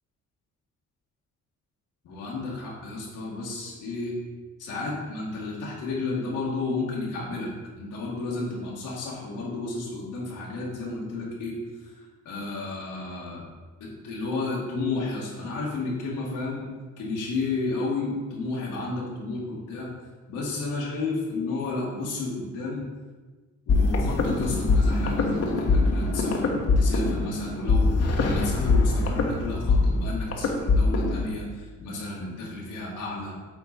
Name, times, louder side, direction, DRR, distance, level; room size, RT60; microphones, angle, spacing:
voice 1, 2.0-4.2 4.6-7.5 7.8-11.6 11.8-13.4 13.8-16.6 17.0-19.9 20.3-22.8 23.7-33.3, left 3 dB, 85° left, -5 dB, 2.0 m, -32 dB
sound 1, 23.7-31.2, left 3 dB, 55° left, 1.2 m, -23 dB
8.2 x 4.0 x 4.2 m, 1.3 s
cardioid pair, 90°, 30 cm